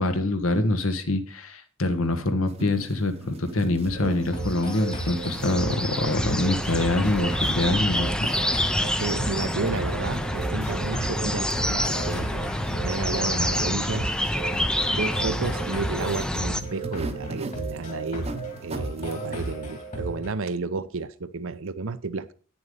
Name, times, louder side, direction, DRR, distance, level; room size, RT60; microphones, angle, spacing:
voice 1, 0.0-8.3, left 2 dB, 70° left, 1.3 m, -25 dB
sound 1, 2.5-19.5, right 2 dB, 30° right, 0.9 m, -43 dB
sound 2, 3.9-20.3, right 2 dB, 35° left, 2.0 m, -34 dB
sound 3, 4.4-16.6, left 1 dB, 5° left, 0.6 m, -28 dB
voice 2, 9.0-12.4 12.8-14.1 14.7-18.3 18.6-22.3, right 3 dB, 65° right, 0.7 m, -31 dB
9.5 x 7.0 x 5.3 m
head